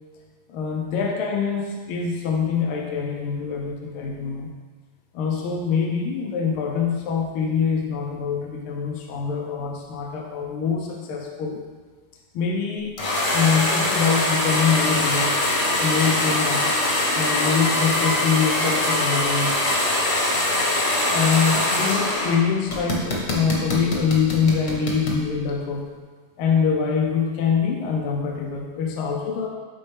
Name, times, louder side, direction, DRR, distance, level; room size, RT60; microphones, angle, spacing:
voice 1, 0.5-4.5 5.1-11.6 12.3-12.9 13.3-15.3 15.8-16.6 17.1-19.6 21.1-25.9 26.4-29.5, left 6 dB, 85° left, 0 dB, 1.6 m, -24 dB
sound 1, 13.0-22.4 22.7-25.2, left 1 dB, 45° left, 1.3 m, -22 dB
8.5 x 4.4 x 3.3 m, 1.5 s
omnidirectional pair, 2.4 m